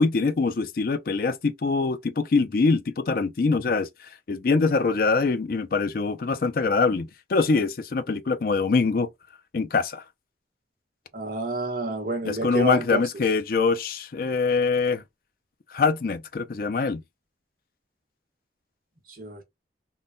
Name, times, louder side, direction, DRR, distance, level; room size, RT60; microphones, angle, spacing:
voice 1, 0.0-3.9 4.3-9.1 9.5-10.0 12.3-15.0 15.7-17.0, left 4 dB, 50° left, 0.4 m, -24 dB
voice 2, 11.1-13.0 19.2-19.4, right 2 dB, 50° right, 1.1 m, -28 dB
3.6 x 2.2 x 2.5 m
head